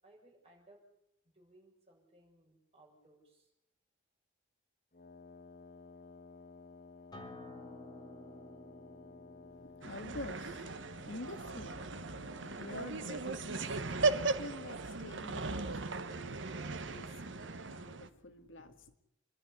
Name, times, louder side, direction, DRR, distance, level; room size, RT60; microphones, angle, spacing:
voice 1, 0.0-0.8 1.3-3.5, right 1 dB, 30° right, 7.1 m, -63 dB
Wind instrument woodwind instrument, 4.9-14.3, left 4 dB, 45° left, 1.2 m, -55 dB
Acoustic guitar, 7.1-12.3, left 1 dB, 20° left, 3.8 m, -53 dB
voice 2, 9.6-12.2 12.5-13.7 14.0-18.9, left 2 dB, 80° left, 1.9 m, -48 dB
sound 1, 9.8-18.1, right 3 dB, 70° right, 1.2 m, -37 dB
27.5 x 12.0 x 9.9 m
head